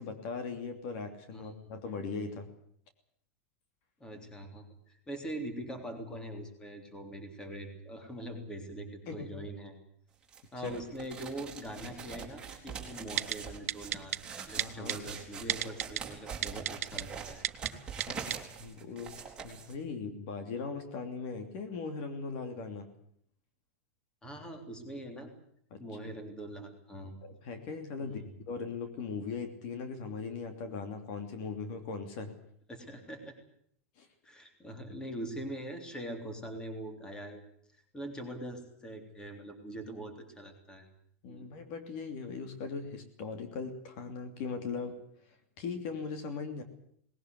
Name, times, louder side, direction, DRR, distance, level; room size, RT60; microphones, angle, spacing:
voice 1, 0.0-2.5 9.1-9.3 10.6-10.7 14.6-15.0 18.1-18.2 18.6-22.9 25.7-25.8 27.2-28.2 28.5-32.3 34.0-34.1 41.2-45.0 45.6-46.6, left 5 dB, 45° left, 7 dB, 2.9 m, -39 dB
voice 2, 4.0-9.7 10.5-17.5 24.2-25.3 25.8-27.1 28.0-28.3 32.7-33.3 34.2-37.4 37.9-40.9 41.3-41.5, right 1 dB, 10° left, 6 dB, 3.5 m, -43 dB
sound 1, 10.3-19.7, right 6 dB, 10° right, 3.7 m, -43 dB
Typing, 13.2-13.4 13.7-14.2 14.6-14.9 15.5-16.0 16.4-17.0 17.4-17.7 18.0-18.1 18.3-18.4, right 12 dB, 85° right, 0.9 m, -30 dB
19.5 x 18.0 x 9.6 m, 0.66 s
supercardioid pair, 160°, 8 cm